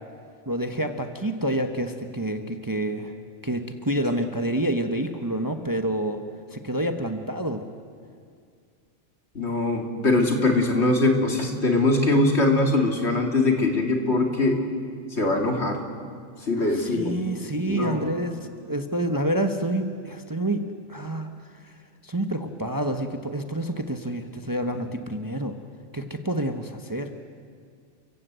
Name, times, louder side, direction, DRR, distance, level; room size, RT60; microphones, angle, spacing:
voice 1, 0.5-3.1 3.4-6.2 6.5-7.6 16.6-18.4 18.7-21.3 21.6-21.7 22.0-25.6 25.9-27.1, right 1 dB, 20° right, 6 dB, 1.0 m, -28 dB
voice 2, 9.3-14.6 15.1-15.8 16.4-17.2 17.6-18.0, left 2 dB, 65° left, 2 dB, 2.8 m, -22 dB
30.0 x 16.0 x 8.1 m, 2.2 s
omnidirectional pair, 1.2 m